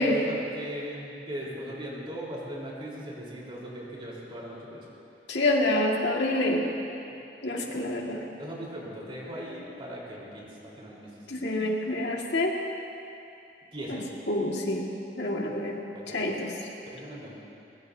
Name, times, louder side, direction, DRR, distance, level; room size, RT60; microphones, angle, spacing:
voice 1, 0.0-4.8 7.6-7.9 8.4-11.1 13.7-14.0 15.9-16.3 16.9-17.4, equal, 30° right, -5 dB, 4.2 m, -39 dB
voice 2, 5.3-6.7 7.4-8.2 11.3-12.5 13.9-14.0 14.3-14.9 15.2-15.8 16.1-16.5, left 1 dB, 75° left, -1 dB, 2.1 m, -27 dB
23.0 x 21.5 x 2.8 m, 2.7 s
head